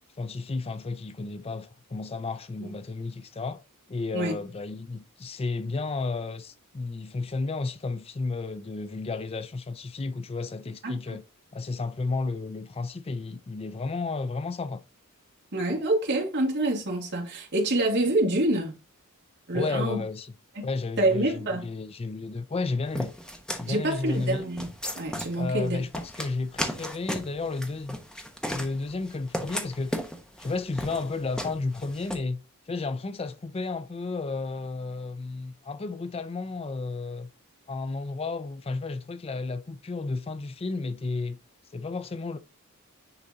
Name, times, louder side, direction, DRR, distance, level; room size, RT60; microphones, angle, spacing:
voice 1, 0.2-3.6 3.9-11.2 11.5-14.8 19.5-20.3 20.6-23.1 23.5-24.5 25.4-28.0 28.5-30.0 30.4-32.4 32.7-37.3 37.7-41.4 41.7-42.4, left 3 dB, 25° left, 0.4 m, -32 dB
voice 2, 10.8-11.2 15.5-18.8 19.5-20.0 20.6-20.7 21.0-21.6 23.7-24.7 25.0-25.8, right 1 dB, 55° right, 2.2 m, -26 dB
sound 1, 23.0-32.2, equal, 5° left, 1.0 m, -35 dB
9.6 x 3.9 x 2.8 m
head